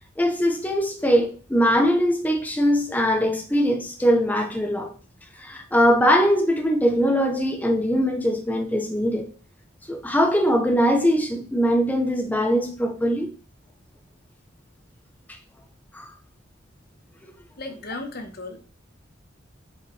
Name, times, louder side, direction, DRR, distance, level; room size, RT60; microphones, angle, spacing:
voice 1, 0.2-4.9 5.4-9.3 9.9-13.3 15.3-15.4 15.9-16.1, equal, 10° left, 0.7 m, -21 dB
voice 2, 17.6-18.7, left 2 dB, 50° left, 1.0 m, -35 dB
7.0 x 5.2 x 3.2 m
head